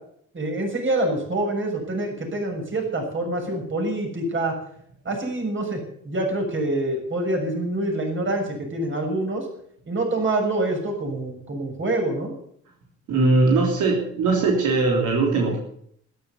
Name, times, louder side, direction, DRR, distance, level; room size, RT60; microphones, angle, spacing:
voice 1, 0.3-4.6 5.1-9.5 9.9-12.3, right 2 dB, 40° right, 1 dB, 6.9 m, -26 dB
voice 2, 13.1-15.6, right 3 dB, 85° right, 0 dB, 3.4 m, -20 dB
13.0 x 11.5 x 8.3 m, 0.67 s
cardioid pair, 90°, 30 cm